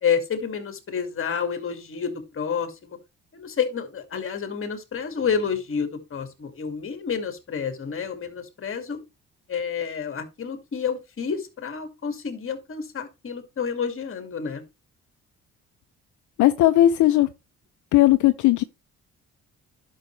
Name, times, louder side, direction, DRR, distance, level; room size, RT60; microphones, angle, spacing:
voice 1, 0.0-3.0 3.3-9.0 9.5-14.6, left 6 dB, 45° left, 2.3 m, -29 dB
voice 2, 16.4-17.3 17.9-18.6, left 14 dB, 75° left, 0.6 m, -17 dB
11.0 x 6.1 x 3.3 m
cardioid pair, 90°, 30 cm